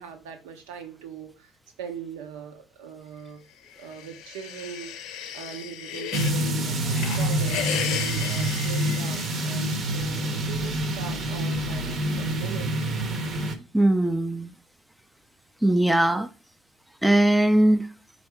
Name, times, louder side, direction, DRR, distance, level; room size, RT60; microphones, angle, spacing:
voice 1, 0.0-1.5 1.8-3.4 3.8-12.8, right 7 dB, 85° right, 0.9 m, -40 dB
sound 1, 3.7-6.4 6.8-9.7, left 9 dB, 75° left, 0.6 m, -34 dB
sound 2, 6.1-13.5, right 1 dB, 50° right, 0.8 m, -27 dB
voice 2, 13.7-14.5 15.6-16.3 17.0-17.9, right 1 dB, 5° right, 0.4 m, -20 dB
4.2 x 2.6 x 4.7 m
supercardioid pair, 80°, 0 cm